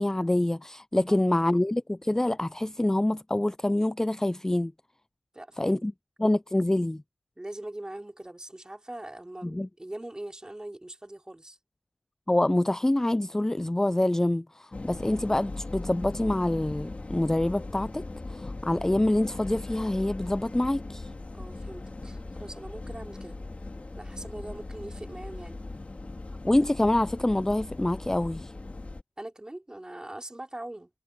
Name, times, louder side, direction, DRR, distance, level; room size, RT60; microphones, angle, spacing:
voice 1, 0.0-4.7 5.6-5.9 6.2-7.0 9.4-9.7 12.3-21.1 26.4-28.5, left 1 dB, 10° left, 0.4 m, -26 dB
voice 2, 5.3-5.8 7.4-11.6 21.3-23.4 24.0-25.6 29.2-30.9, right 1 dB, 20° right, 4.0 m, -41 dB
sound 1, 14.7-29.0, left 2 dB, 35° left, 2.6 m, -39 dB
cardioid pair, 45°, 4 cm